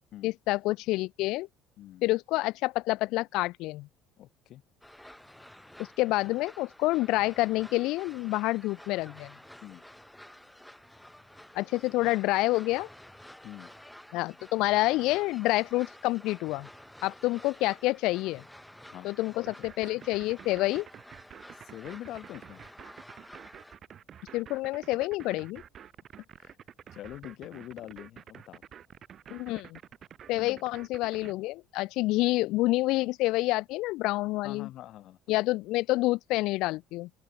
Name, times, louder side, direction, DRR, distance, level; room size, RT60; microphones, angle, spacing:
voice 1, 0.2-1.5 2.0-3.9 6.0-9.3 11.5-12.9 14.1-16.7 17.0-18.4 19.0-20.9 24.3-25.6 29.3-29.8 30.3-34.7 35.3-37.1, left 19 dB, 65° left, 0.5 m, -28 dB
voice 2, 4.2-4.6 9.6-9.8 12.0-12.1 13.4-13.7 18.9-19.7 19.9-20.0 21.7-22.6 26.2-26.6 26.9-28.6 30.3-30.6 34.4-35.2, left 13 dB, 50° left, 0.9 m, -44 dB
sound 1, 4.8-23.8, left 1 dB, 5° left, 3.4 m, -51 dB
sound 2, 19.5-31.3, right 9 dB, 35° right, 2.5 m, -49 dB
open air
cardioid pair, 155°, 0 cm